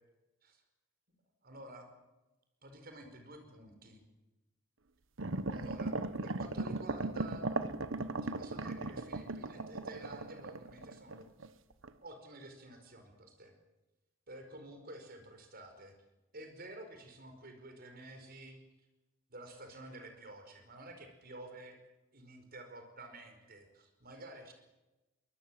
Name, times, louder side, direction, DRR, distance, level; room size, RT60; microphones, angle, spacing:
voice 1, 1.4-1.9 2.6-4.0 5.5-7.5 7.9-11.3 12.0-13.5 14.3-15.9 16.3-18.6 19.3-21.8 22.1-24.5, right 1 dB, 50° right, 6 dB, 4.9 m, -51 dB
sound 1, 5.2-11.5 11.8-11.9, right 2 dB, 70° right, 1.2 m, -38 dB
23.5 x 20.0 x 7.6 m, 1.0 s
head